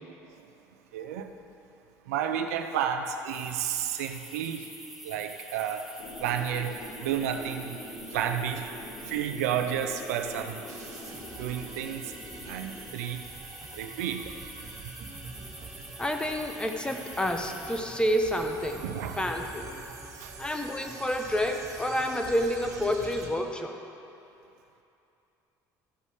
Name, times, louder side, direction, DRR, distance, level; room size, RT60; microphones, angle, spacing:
voice 1, 0.9-1.3 2.1-4.7 5.0-5.9 6.2-7.8 8.1-8.7 9.1-10.6 11.4-12.1 12.5-13.2 13.7-14.3 18.8-19.3 20.2-20.3, right 9 dB, 90° right, 6 dB, 0.5 m, -31 dB
sound 1, 3.3-17.8, right 1 dB, 5° right, 1.3 m, -46 dB
sound 2, 6.0-12.9, left 1 dB, 70° left, 2.1 m, -44 dB
sound 3, 10.7-23.3, right 3 dB, 45° right, 1.4 m, -45 dB
voice 2, 16.0-18.8 19.2-19.7 20.4-23.8, equal, 10° left, 4 dB, 1.0 m, -29 dB
14.0 x 5.4 x 4.9 m, 2.8 s
supercardioid pair, 75°, 8 cm